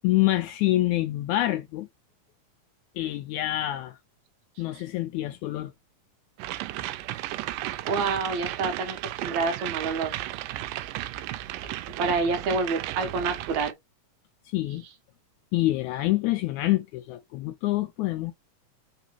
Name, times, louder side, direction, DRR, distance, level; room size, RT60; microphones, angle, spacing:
voice 1, 0.0-1.9 2.9-4.0 4.6-5.7 14.4-14.8 15.5-18.3, left 16 dB, 80° left, 1.7 m, -26 dB
sound 1, 6.4-13.7, right 15 dB, 85° right, 2.1 m, -34 dB
voice 2, 7.9-10.5 12.0-13.7, right 4 dB, 70° right, 2.1 m, -28 dB
4.8 x 3.8 x 2.8 m
omnidirectional pair, 3.8 m